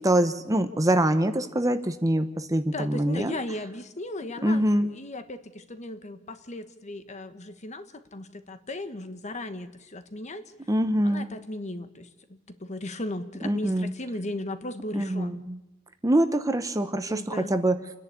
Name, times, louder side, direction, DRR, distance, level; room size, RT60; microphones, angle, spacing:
voice 1, 0.0-3.4 4.4-4.9 10.7-11.3 13.4-13.9 14.9-15.6 16.0-17.8, right 1 dB, 15° right, 10 dB, 0.9 m, -24 dB
voice 2, 2.7-10.4 11.0-15.4 17.1-17.5, left 1 dB, 35° left, 9 dB, 1.3 m, -36 dB
29.0 x 10.5 x 8.4 m, 0.97 s
head